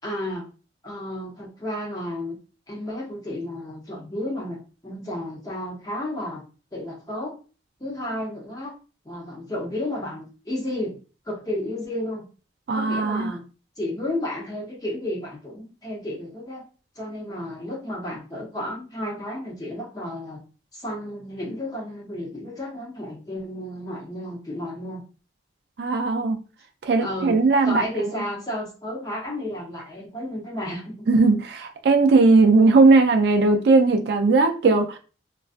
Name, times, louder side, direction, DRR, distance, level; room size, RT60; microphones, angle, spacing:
voice 1, 0.0-0.5 0.8-2.4 2.7-6.4 6.7-7.3 7.8-8.7 9.0-11.0 11.3-12.2 12.7-13.5 13.8-16.7 17.0-20.4 20.7-25.0 27.0-31.1, left 1 dB, 20° left, 0.7 m, -32 dB
voice 2, 12.7-13.3 25.8-26.4 26.8-27.8 31.1-35.0, right 3 dB, 60° right, 0.3 m, -18 dB
2.4 x 2.2 x 2.4 m
head